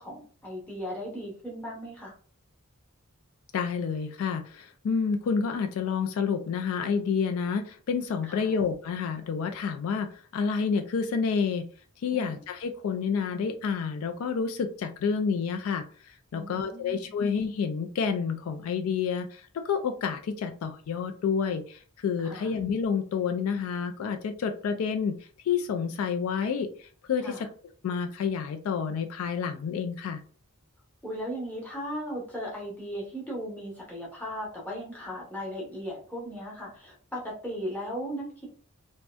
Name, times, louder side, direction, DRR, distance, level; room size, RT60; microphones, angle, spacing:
voice 1, 0.0-2.1 8.3-8.5 12.1-12.4 16.3-17.1 22.2-22.5 27.2-27.5 31.0-38.5, equal, 5° left, -5 dB, 0.8 m, -37 dB
voice 2, 3.5-11.7 12.0-25.2 25.4-27.5 27.8-30.2, left 6 dB, 70° left, 8 dB, 0.3 m, -29 dB
2.6 x 2.1 x 2.2 m, 0.43 s
head